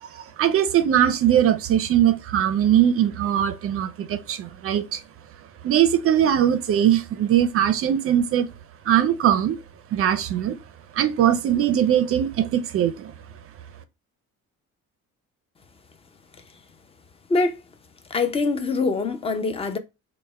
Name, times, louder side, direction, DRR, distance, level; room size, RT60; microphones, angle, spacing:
voice 1, 0.0-5.0 5.6-8.5 8.9-9.6 9.9-10.6 10.9-13.1, right 10 dB, 45° right, 0.4 m, -21 dB
voice 2, 18.1-19.8, left 3 dB, 20° left, 0.5 m, -23 dB
3.3 x 2.1 x 4.0 m
cardioid pair, 120°, 31 cm